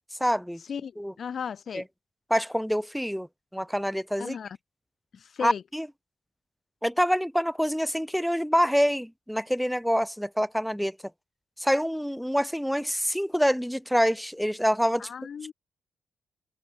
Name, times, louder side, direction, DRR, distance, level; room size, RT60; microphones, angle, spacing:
voice 1, 0.2-0.6 1.0-1.1 1.7-1.8 2.3-3.3 3.5-4.4 5.4-5.9 6.8-11.0 11.6-15.1, equal, ahead, 0.8 m, -26 dB
voice 2, 1.2-1.8 4.2-4.6 5.1-5.6 15.0-15.5, left 7 dB, 60° left, 5.4 m, -35 dB
supercardioid pair, 60°, 0 cm